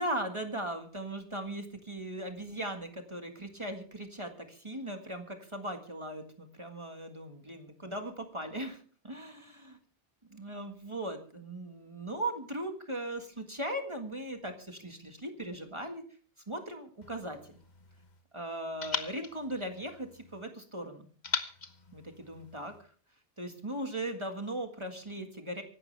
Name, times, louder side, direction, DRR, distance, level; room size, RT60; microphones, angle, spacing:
voice 1, 0.0-9.8 10.3-16.0 16.5-17.6 18.3-21.1 21.9-22.9 23.4-25.6, right 1 dB, 30° right, 5 dB, 1.8 m, -38 dB
sound 1, 17.0-18.2 18.8-20.4 21.2-22.8, left 4 dB, 45° left, 1.3 m, -40 dB
24.5 x 12.0 x 3.4 m, 0.42 s
omnidirectional pair, 1.0 m